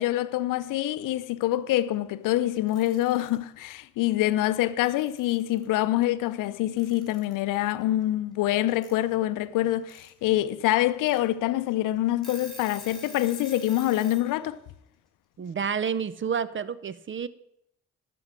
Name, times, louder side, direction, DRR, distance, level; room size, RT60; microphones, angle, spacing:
voice 1, 0.0-14.6, left 14 dB, 65° left, 0.6 m, -26 dB
Alarm / Clock, 2.6-3.4 4.5-4.6 4.8-5.6 6.8-7.4 8.8-8.9 9.7-10.1 10.5-10.6 11.0-11.2 11.7-11.8 12.1-14.2, left 1 dB, ahead, 5.0 m, -46 dB
voice 2, 15.4-17.3, right 7 dB, 35° right, 0.7 m, -29 dB
12.0 x 6.9 x 6.1 m
hypercardioid pair, 45°, 34 cm